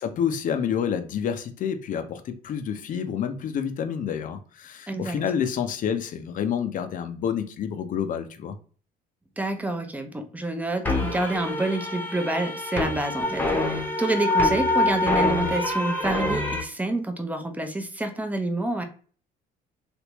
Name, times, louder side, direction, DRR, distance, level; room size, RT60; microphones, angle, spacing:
voice 1, 0.0-8.6, left 8 dB, 50° left, 0.6 m, -28 dB
voice 2, 4.9-5.2 9.4-18.8, right 2 dB, 10° right, 0.6 m, -28 dB
sound 1, 10.8-16.6, left 2 dB, 10° left, 0.9 m, -25 dB
3.4 x 2.5 x 2.9 m
cardioid pair, 110°, 17 cm